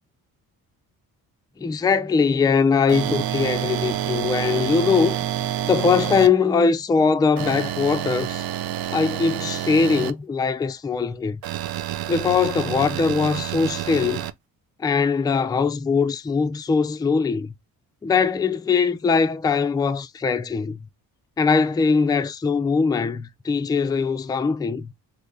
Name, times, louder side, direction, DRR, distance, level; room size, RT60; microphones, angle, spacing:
voice 1, 1.6-5.2 5.7-8.4 8.9-11.4 12.1-14.3 14.8-17.5 18.0-20.8 21.4-24.9, left 5 dB, 10° left, 0.3 m, -21 dB
sound 1, 2.9-6.3 7.4-10.1 11.4-14.3, right 11 dB, 70° right, 0.5 m, -28 dB
3.3 x 2.8 x 2.5 m
cardioid pair, 70°, 37 cm